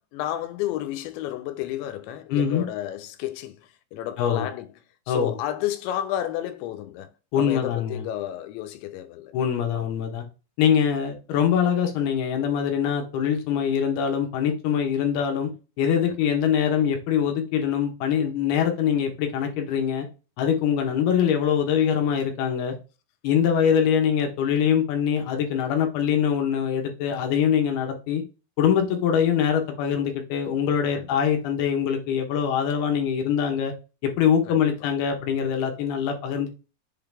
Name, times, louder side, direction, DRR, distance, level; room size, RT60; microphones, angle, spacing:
voice 1, 0.1-4.7 5.1-7.1 7.4-9.4 9.7-9.9 16.1-16.2 30.9-31.1 34.5-34.6, left 12 dB, 85° left, 2.9 m, -32 dB
voice 2, 2.3-2.6 4.2-4.5 5.1-5.3 7.3-8.0 9.3-10.2 10.6-15.5 15.8-20.1 20.4-22.7 23.2-28.2 28.6-33.7 34.0-36.5, left 8 dB, 70° left, 2.8 m, -23 dB
7.3 x 3.8 x 3.4 m
omnidirectional pair, 5.2 m